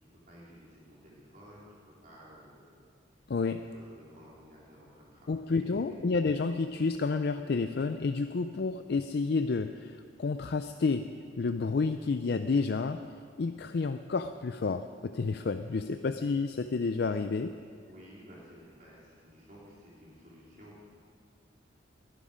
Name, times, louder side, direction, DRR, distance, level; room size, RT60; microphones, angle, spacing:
voice 1, 0.0-6.0 17.9-21.0, equal, 45° right, -6 dB, 3.7 m, -54 dB
voice 2, 3.3-3.6 5.3-13.0 13.4-17.6, left 4 dB, 60° left, 9 dB, 0.4 m, -30 dB
20.0 x 11.5 x 5.1 m, 2.3 s
head